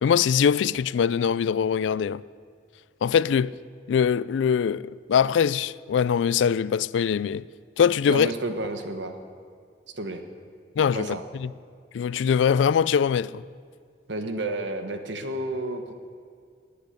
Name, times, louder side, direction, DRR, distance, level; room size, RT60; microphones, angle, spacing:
voice 1, 0.0-2.2 3.0-3.5 3.9-7.5 7.8-8.3 10.8-11.5 11.9-13.4, left 7 dB, 90° left, 0.3 m, -22 dB
voice 2, 8.1-9.2 9.9-10.2 10.9-11.2 14.1-15.9, right 2 dB, 80° right, 1.3 m, -31 dB
20.5 x 8.4 x 6.6 m
head